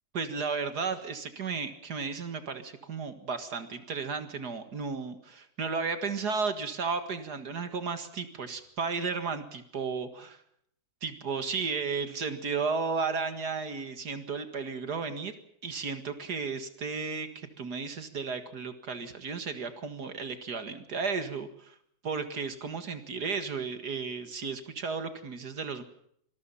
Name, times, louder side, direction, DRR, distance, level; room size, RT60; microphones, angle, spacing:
voice 1, 0.1-10.4 11.0-15.3 15.6-21.8 22.0-25.8, right 5 dB, 70° right, 9 dB, 2.4 m, -34 dB
26.0 x 19.5 x 5.7 m, 0.69 s
omnidirectional pair, 1.8 m